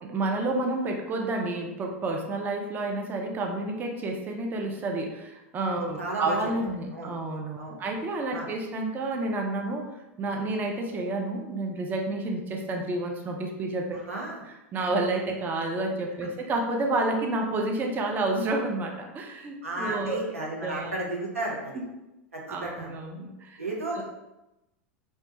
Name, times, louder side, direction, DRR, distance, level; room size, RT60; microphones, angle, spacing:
voice 1, 0.0-9.9 10.2-14.0 14.7-20.3 20.6-21.0 21.7-21.8 22.5-23.6 23.9-24.0, right 2 dB, 25° right, 2 dB, 0.4 m, -30 dB
voice 2, 6.0-6.4 6.9-7.1 7.6-7.8 8.3-8.5 14.1-14.4 19.6-21.7 22.3-23.0 23.6-24.0, right 2 dB, 90° right, -3 dB, 0.6 m, -33 dB
2.2 x 2.1 x 2.8 m, 0.96 s
hypercardioid pair, 90°, 7 cm